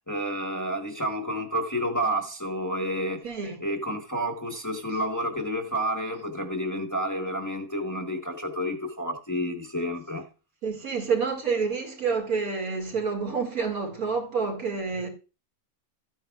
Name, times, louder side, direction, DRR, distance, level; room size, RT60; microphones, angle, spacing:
voice 1, 0.1-3.2 3.6-10.2, equal, 15° left, 1.1 m, -30 dB
voice 2, 3.2-3.6 4.9-5.0 10.6-15.1, right 5 dB, 85° right, 2.8 m, -28 dB
13.5 x 9.2 x 2.4 m
omnidirectional pair, 1.5 m